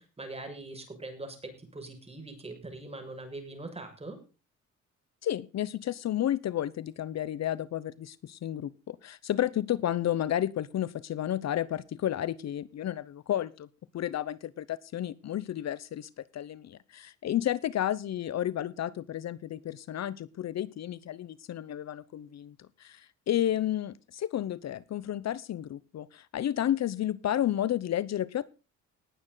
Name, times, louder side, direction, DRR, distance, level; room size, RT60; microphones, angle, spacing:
voice 1, 0.0-4.2, right 2 dB, 20° right, 5 dB, 6.6 m, -42 dB
voice 2, 5.2-13.7 13.9-28.5, left 11 dB, 60° left, 18 dB, 0.9 m, -32 dB
19.5 x 8.8 x 4.0 m, 0.33 s
cardioid pair, 90°, 30 cm